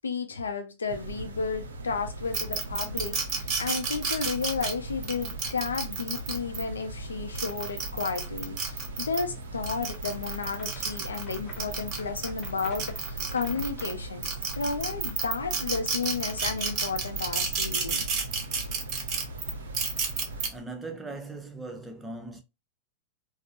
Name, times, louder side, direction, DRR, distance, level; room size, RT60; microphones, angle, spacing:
voice 1, 0.0-18.1, left 5 dB, 75° left, 0.5 m, -33 dB
sound 1, 0.9-20.5, right 1 dB, 75° right, 0.6 m, -40 dB
sound 2, 2.3-6.6 7.2-9.2 9.6-13.9 14.2-20.5, right 5 dB, 40° right, 0.9 m, -31 dB
sound 3, 10.0-14.1, left 2 dB, 30° left, 0.9 m, -48 dB
voice 2, 20.5-22.4, right 2 dB, 10° right, 0.7 m, -39 dB
3.6 x 2.0 x 2.5 m
figure-of-eight pair, 95°, 0 cm